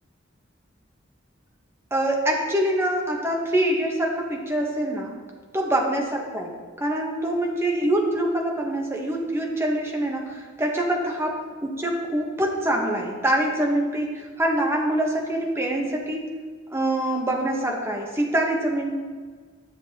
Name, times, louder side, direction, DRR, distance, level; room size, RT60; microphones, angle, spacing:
voice 1, 1.9-5.1 5.5-16.2 16.7-18.9, right 1 dB, 15° right, 0 dB, 1.0 m, -25 dB
10.5 x 6.8 x 2.8 m, 1.5 s
head